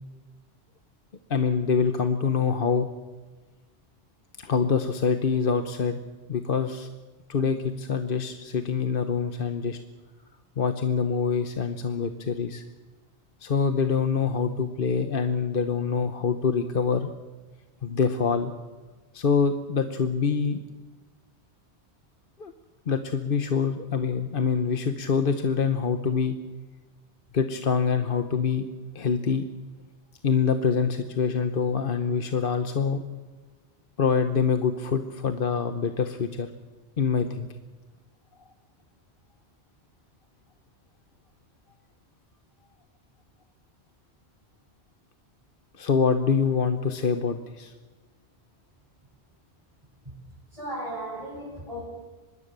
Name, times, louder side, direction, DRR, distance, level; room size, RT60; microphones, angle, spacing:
voice 1, 1.3-2.9 4.4-6.0 6.3-6.9 7.3-9.8 10.6-12.6 13.4-17.1 17.8-18.5 19.1-20.6 22.4-22.5 22.9-26.4 27.3-28.6 28.9-29.4 30.2-33.0 34.0-36.5 37.0-37.5 45.8-47.7, left 6 dB, 55° left, 8 dB, 1.2 m, -25 dB
voice 2, 50.5-51.8, right 1 dB, 30° right, -8 dB, 8.2 m, -35 dB
24.5 x 21.0 x 6.8 m, 1.3 s
omnidirectional pair, 1.1 m